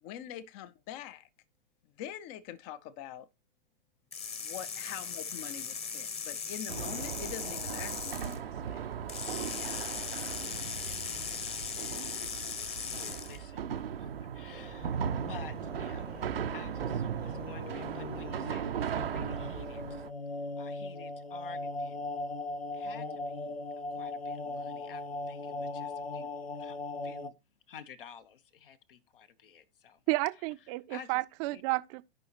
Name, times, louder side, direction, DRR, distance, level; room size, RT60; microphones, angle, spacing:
voice 1, 0.0-1.3 2.0-3.3 4.4-8.8, left 10 dB, 35° left, 0.7 m, -44 dB
sound 1, 4.1-8.4 9.1-13.4, left 6 dB, 20° left, 1.1 m, -38 dB
sound 2, 6.7-20.1, right 8 dB, 75° right, 0.7 m, -37 dB
voice 2, 9.5-16.3 16.5-20.1 20.6-22.1 22.7-23.6 23.9-26.8 27.0-27.3 27.7-30.0 30.9-31.2 31.5-31.6, left 7 dB, 65° left, 1.2 m, -52 dB
sound 3, 14.5-27.3, left 2 dB, 85° left, 0.7 m, -40 dB
voice 3, 30.1-32.0, right 23 dB, 35° right, 0.6 m, -31 dB
15.5 x 5.5 x 2.9 m
figure-of-eight pair, 100°, 29 cm